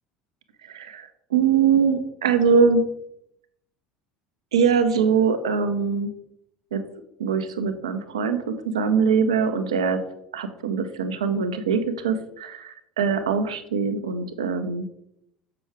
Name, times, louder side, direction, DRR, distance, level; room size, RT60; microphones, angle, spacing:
voice 1, 0.6-2.9 4.5-6.1 6.7-6.8 7.2-10.0 10.3-14.9, right 6 dB, 75° right, 9 dB, 0.7 m, -22 dB
7.0 x 5.8 x 3.5 m, 0.77 s
figure-of-eight pair, 70°, 3 cm